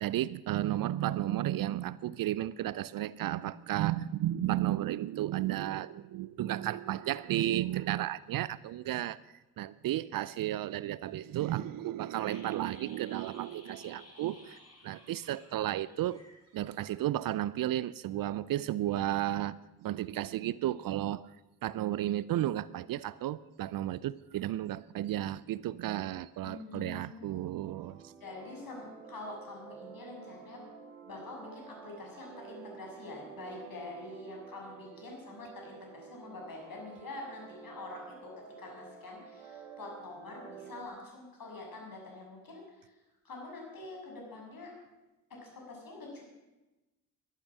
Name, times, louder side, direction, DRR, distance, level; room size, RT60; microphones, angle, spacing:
voice 1, 0.0-9.2 9.6-14.6 14.8-16.2 16.5-19.5 19.8-21.3 21.6-28.1, right 13 dB, 50° right, 19 dB, 0.6 m, -33 dB
sound 1, 12.2-17.0 17.2-17.3, left 2 dB, 35° left, 4.0 m, -55 dB
voice 2, 26.4-27.4 28.2-30.7 31.0-38.3 38.6-43.0 43.2-44.7 45.4-46.2, left 3 dB, 50° left, 0 dB, 6.7 m, -46 dB
sound 2, 27.6-40.8, right 7 dB, 85° right, 2.4 m, -51 dB
15.0 x 12.0 x 6.4 m, 1.0 s
hypercardioid pair, 40°, 43 cm